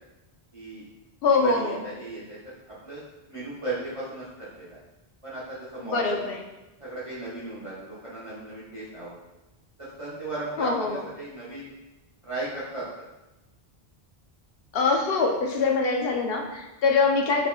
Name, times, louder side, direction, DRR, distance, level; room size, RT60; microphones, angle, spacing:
voice 1, 0.5-0.8 1.3-2.4 2.7-3.0 3.3-4.3 4.5-4.8 5.2-6.2 6.8-9.2 9.8-11.7 12.2-12.8, right 2 dB, 35° right, -9 dB, 0.8 m, -35 dB
voice 2, 1.2-1.8 5.8-6.4 10.6-11.0 14.7-17.5, left 4 dB, 70° left, 2 dB, 0.8 m, -24 dB
5.7 x 3.5 x 2.2 m, 1.0 s
omnidirectional pair, 1.0 m